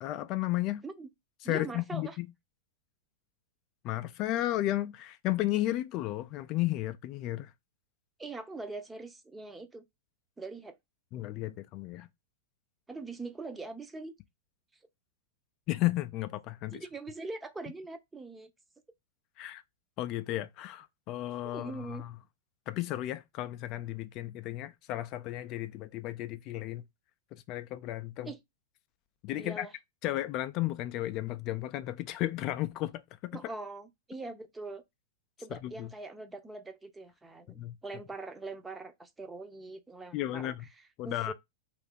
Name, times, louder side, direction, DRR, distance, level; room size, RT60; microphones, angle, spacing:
voice 1, 0.0-0.8 1.4-2.3 3.8-7.5 11.1-12.1 15.7-16.8 19.4-19.6 20.0-22.1 22.7-26.8 27.3-28.3 29.2-29.7 30.0-33.4 35.5-35.9 37.6-37.8 40.1-40.7 41.0-41.3, left 15 dB, 45° left, 0.3 m, -33 dB
voice 2, 1.4-2.2 8.2-9.8 10.4-10.8 12.9-14.1 16.7-18.5 21.4-22.0 28.2-28.4 29.4-29.7 33.3-34.8 35.4-41.3, right 3 dB, 10° right, 0.6 m, -42 dB
2.7 x 2.5 x 3.5 m
hypercardioid pair, 110°, 0 cm